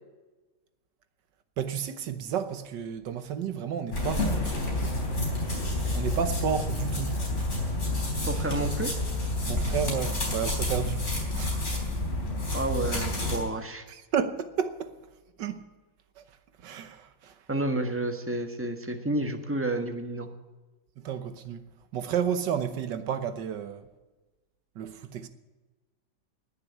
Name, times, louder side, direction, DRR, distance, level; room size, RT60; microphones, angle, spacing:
voice 1, 1.6-4.5 5.9-7.2 9.5-11.1 11.3-11.7 13.9-15.0 15.4-15.6 16.2-16.3 16.6-17.3 21.0-21.6 21.9-23.9 24.8-25.3, right 8 dB, 65° right, 1.5 m, -31 dB
sound 1, 3.9-13.4, left 1 dB, 35° left, 4.2 m, -29 dB
voice 2, 8.3-8.9 12.5-13.8 17.5-20.3, right 2 dB, 10° right, 1.0 m, -30 dB
20.0 x 6.8 x 8.7 m
omnidirectional pair, 2.2 m